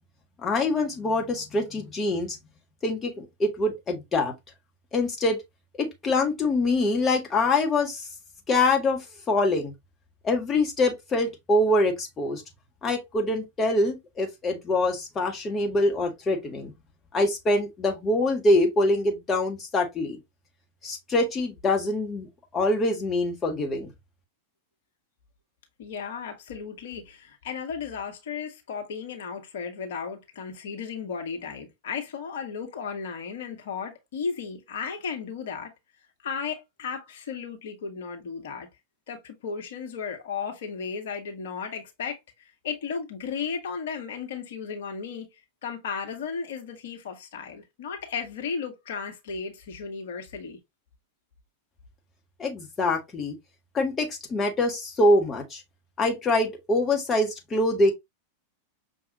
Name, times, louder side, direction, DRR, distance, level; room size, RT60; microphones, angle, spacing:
voice 1, 0.4-2.4 2.8-4.3 4.9-5.4 5.8-8.0 8.5-9.7 10.2-12.4 12.8-16.7 17.1-20.2 20.8-22.3 22.5-23.9 52.4-53.3 53.7-55.6 56.0-57.9, left 2 dB, 20° left, 1.2 m, -24 dB
voice 2, 25.8-35.7 36.2-38.7 39.1-45.3 45.6-50.6, left 6 dB, 55° left, 1.0 m, -35 dB
5.8 x 2.3 x 2.8 m
figure-of-eight pair, 90°, 0 cm